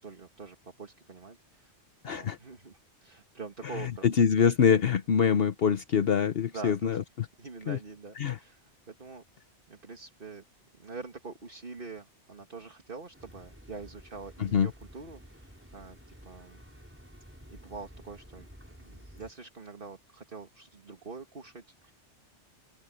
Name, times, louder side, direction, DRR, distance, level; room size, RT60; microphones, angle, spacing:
voice 1, 0.0-1.7 2.0-4.1 6.5-7.0 7.4-10.4 10.8-16.6 17.5-18.5 18.8-21.9, right 4 dB, 50° right, 2.2 m, -45 dB
voice 2, 2.0-2.4 3.7-7.3 7.7-7.8 8.2-8.4 14.4-14.7, left 7 dB, 60° left, 1.0 m, -25 dB
sound 1, 13.1-19.3, equal, 10° right, 5.3 m, -52 dB
open air
omnidirectional pair, 1.2 m